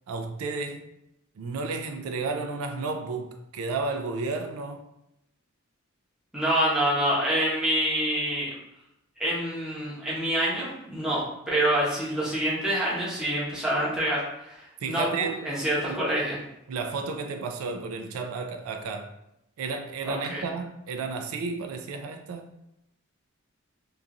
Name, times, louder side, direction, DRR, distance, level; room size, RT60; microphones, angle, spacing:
voice 1, 0.1-0.9 1.4-4.8 14.8-15.5 15.9-16.0 16.7-19.1 19.6-22.5, right 4 dB, 85° right, 0.3 m, -32 dB
voice 2, 6.3-8.5 9.2-16.4 20.0-20.4, right 1 dB, 5° right, 0.8 m, -27 dB
2.9 x 2.4 x 2.4 m
head